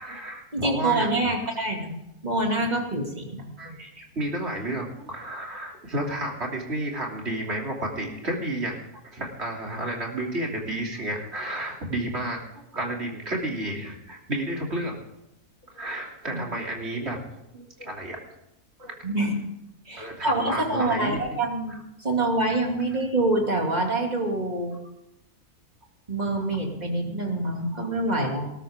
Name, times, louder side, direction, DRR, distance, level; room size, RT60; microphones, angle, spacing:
voice 1, 0.0-1.3 2.9-3.1 3.6-15.0 15.7-17.2 17.5-18.2 18.8-19.0 20.0-21.2 28.2-28.3, right 1 dB, 40° right, -1 dB, 3.3 m, -31 dB
voice 2, 0.5-1.9 2.2-3.5 16.3-16.4 19.0-19.3 19.9-24.8 26.1-28.5, right 2 dB, 25° right, 1 dB, 2.7 m, -26 dB
19.0 x 13.0 x 3.7 m, 0.87 s
omnidirectional pair, 1.6 m